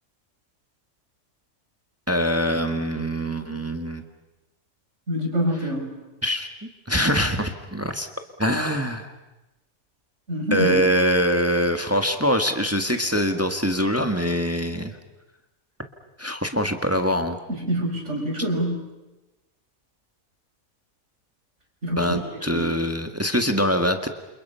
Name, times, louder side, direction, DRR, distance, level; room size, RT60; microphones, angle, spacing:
voice 1, 2.1-4.0 6.2-6.5 6.9-8.1 8.4-9.1 10.5-14.9 16.2-17.4 22.0-24.1, equal, 10° right, 6 dB, 1.5 m, -23 dB
voice 2, 5.1-5.9 10.3-10.8 17.6-18.8 21.8-22.2 22.5-22.6, equal, 55° right, 1 dB, 5.9 m, -26 dB
28.5 x 28.0 x 5.6 m, 1.0 s
omnidirectional pair, 1.5 m